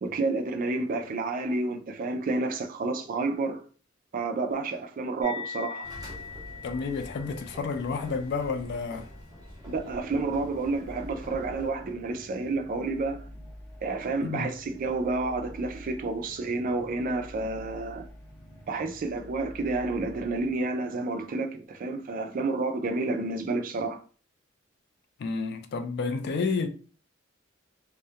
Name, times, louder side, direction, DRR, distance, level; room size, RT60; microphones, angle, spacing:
voice 1, 0.0-3.6 4.1-5.9 9.7-13.2 13.8-18.0 18.7-24.0, right 3 dB, 45° right, 0.3 m, -30 dB
sound 1, 5.2-12.1, left 6 dB, 75° left, 0.9 m, -44 dB
sound 2, 5.8-11.7, equal, 20° right, 0.8 m, -46 dB
voice 2, 6.6-9.1 14.2-14.5 25.2-26.7, left 4 dB, 55° left, 0.3 m, -30 dB
sound 3, 9.4-21.2, equal, 5° left, 0.9 m, -48 dB
2.3 x 2.1 x 2.7 m
head